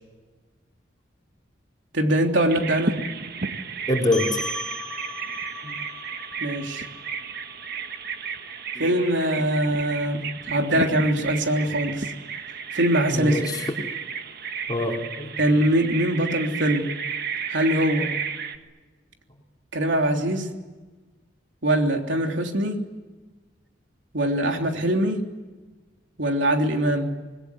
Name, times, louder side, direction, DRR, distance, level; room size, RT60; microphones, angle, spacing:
voice 1, 1.9-3.0 6.4-6.8 8.8-12.1 12.7-13.4 15.4-16.9 17.5-18.1 19.7-20.5 21.6-22.8 24.1-25.2 26.2-27.1, right 1 dB, 80° right, 3 dB, 3.4 m, -22 dB
Bird vocalization bird call bird song, 2.5-18.6, right 6 dB, 55° right, 1.8 m, -33 dB
voice 2, 3.9-4.4 5.6-5.8 8.7-8.9 9.4-9.5 13.1-13.7 14.7-15.4, left 2 dB, 20° left, 1 dB, 4.0 m, -25 dB
sound 1, 4.1-8.9, left 1 dB, 5° left, 3.4 m, -38 dB
26.5 x 20.5 x 9.9 m, 1.3 s
head